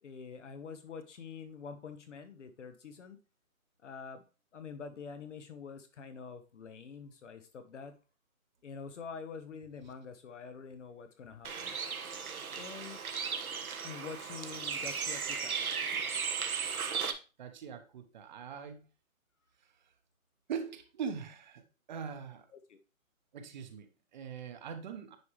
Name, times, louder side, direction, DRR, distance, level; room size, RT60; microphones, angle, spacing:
voice 1, 0.0-3.2 3.8-4.2 4.5-8.0 8.6-11.8 12.5-13.0 13.8-15.5 22.5-22.8, left 5 dB, 55° left, 8 dB, 1.1 m, -46 dB
Bird, 11.4-17.1, right 6 dB, 85° right, 1.2 m, -36 dB
voice 2, 17.4-18.8 20.5-21.6 21.9-22.5 23.3-25.2, right 6 dB, 35° right, 8 dB, 1.0 m, -41 dB
9.6 x 4.7 x 3.1 m, 0.33 s
hypercardioid pair, 150°, 42 cm